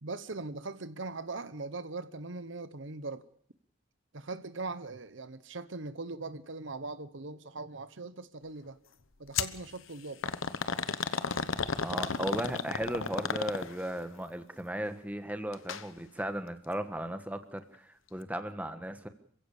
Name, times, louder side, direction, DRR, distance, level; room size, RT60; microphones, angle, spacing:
voice 1, 0.0-3.3 4.1-8.8 9.2-10.4 11.8-12.0, right 3 dB, 65° right, 1.0 m, -40 dB
sound 1, 9.3-9.6 10.2-13.9 15.5-15.8 16.2-16.3 17.1-17.2, left 5 dB, 80° left, 1.1 m, -33 dB
voice 2, 11.8-19.1, right 1 dB, 5° right, 1.4 m, -36 dB
27.5 x 16.0 x 7.1 m
head